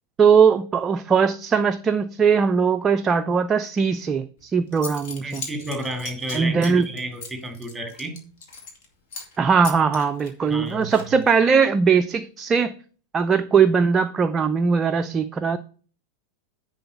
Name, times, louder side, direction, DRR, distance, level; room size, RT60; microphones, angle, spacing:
voice 1, 0.2-5.4 6.3-6.9 9.4-12.7 13.1-15.6, right 6 dB, 20° right, 0.4 m, -20 dB
Zipper (clothing) / Coin (dropping), 4.4-4.5 4.7-8.8 9.1-9.4 9.6-11.4, left 4 dB, 50° left, 2.2 m, -38 dB
voice 2, 5.2-8.2 10.5-11.2, right 1 dB, 5° right, 2.0 m, -32 dB
10.5 x 3.9 x 6.7 m
figure-of-eight pair, 90°, 0 cm